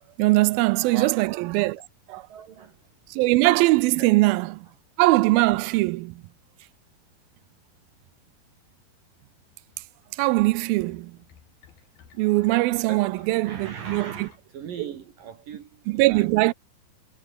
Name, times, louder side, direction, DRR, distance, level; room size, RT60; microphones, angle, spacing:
voice 1, 0.2-1.8 2.1-2.2 3.1-4.5 5.0-6.2 10.2-11.1 12.2-14.3 15.9-16.5, right 21 dB, 85° right, 2.3 m, -21 dB
voice 2, 1.7-2.8 3.9-4.2 12.9-16.5, right 8 dB, 65° right, 3.9 m, -39 dB
sound 1, 9.7-14.4, left 8 dB, 75° left, 5.0 m, -55 dB
omnidirectional pair, 4.3 m